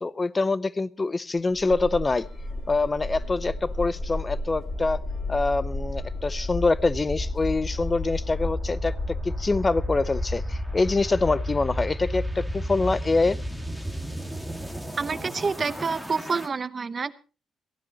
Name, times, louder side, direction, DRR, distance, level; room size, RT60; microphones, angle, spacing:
voice 1, 0.0-2.3 2.7-5.0 5.3-13.4, left 3 dB, 20° left, 19 dB, 0.6 m, -25 dB
sound 1, 1.5-16.5, left 1 dB, 5° left, 1.9 m, -32 dB
sound 2, 2.1-8.5, left 3 dB, 45° left, 7.3 m, -56 dB
voice 2, 15.0-17.1, right 5 dB, 30° right, 14 dB, 0.9 m, -28 dB
22.0 x 15.5 x 2.9 m, 0.35 s
cardioid pair, 140°, 0 cm